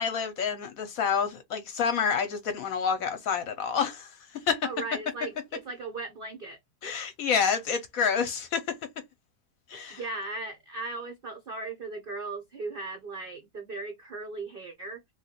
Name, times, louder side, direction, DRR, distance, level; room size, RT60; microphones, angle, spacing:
voice 1, 0.0-4.7 6.8-8.8 9.7-10.0, left 6 dB, 65° left, 0.9 m, -28 dB
voice 2, 4.6-6.6 9.9-15.0, right 3 dB, 70° right, 0.5 m, -37 dB
3.0 x 2.3 x 2.8 m
omnidirectional pair, 1.8 m